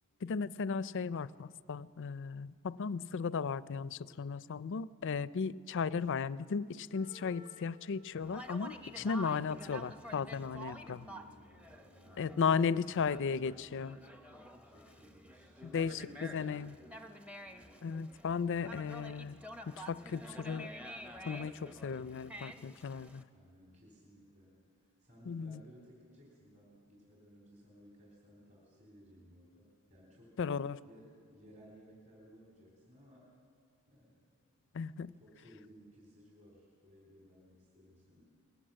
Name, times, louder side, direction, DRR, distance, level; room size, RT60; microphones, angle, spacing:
voice 1, 0.2-11.0 12.2-14.0 15.7-16.7 17.8-20.7 21.2-23.2 25.3-25.6 30.4-30.8 34.7-35.1, left 5 dB, 60° left, 18 dB, 0.4 m, -35 dB
Wind instrument woodwind instrument, 6.9-12.0, left 3 dB, 80° right, 6.3 m, -61 dB
Conversation, 8.2-23.2, equal, 5° right, 0.8 m, -50 dB
voice 2, 9.0-9.3 10.6-12.5 12.8-13.4 14.6-17.1 23.3-24.6 25.0-30.4 30.9-33.3 33.9-34.2 35.1-38.2, equal, 35° right, -2 dB, 4.0 m, -59 dB
20.5 x 18.0 x 7.6 m, 2.1 s
head